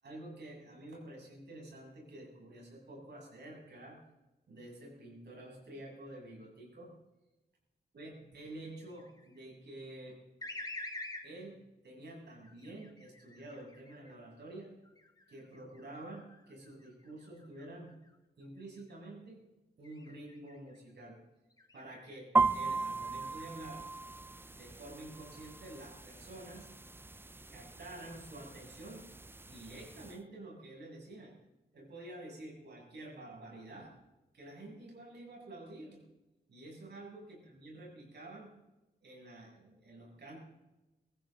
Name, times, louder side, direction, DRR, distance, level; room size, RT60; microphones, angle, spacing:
voice 1, 0.0-4.0 4.5-6.9 7.9-10.2 11.2-11.5 11.8-14.7 15.3-17.9 18.4-19.4 19.8-21.2 21.7-23.8 24.5-26.7 27.5-29.0 29.4-31.3 31.7-33.9 34.3-36.0 36.5-38.5 39.0-40.4, right 1 dB, 75° right, -2 dB, 7.3 m, -49 dB
sound 1, 8.6-9.4 10.4-11.3 12.3-14.2 14.8-18.1 18.6-19.0 19.8-20.8 21.5-22.2 22.7-23.7, left 2 dB, 20° left, 1.7 m, -49 dB
sound 2, 22.4-30.2, right 3 dB, 15° right, 0.4 m, -37 dB
23.0 x 15.5 x 3.9 m, 1.0 s
wide cardioid pair, 140°, 17 cm